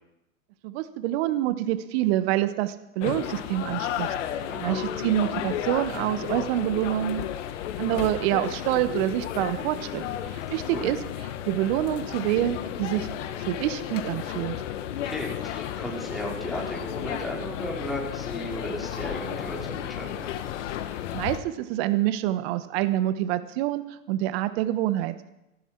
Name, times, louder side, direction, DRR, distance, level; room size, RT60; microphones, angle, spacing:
voice 1, 0.6-4.1 4.6-7.3 7.8-10.0 10.3-11.0 11.5-13.1 13.4-14.6 21.1-25.1, right 14 dB, 50° right, 12 dB, 1.1 m, -26 dB
sound 1, 3.0-21.4, left 10 dB, 60° left, 1.4 m, -33 dB
voice 2, 4.4-4.8 10.5-10.9 15.0-20.3, equal, ahead, -5 dB, 4.6 m, -35 dB
15.5 x 14.5 x 4.5 m, 0.92 s
hypercardioid pair, 115°, 41 cm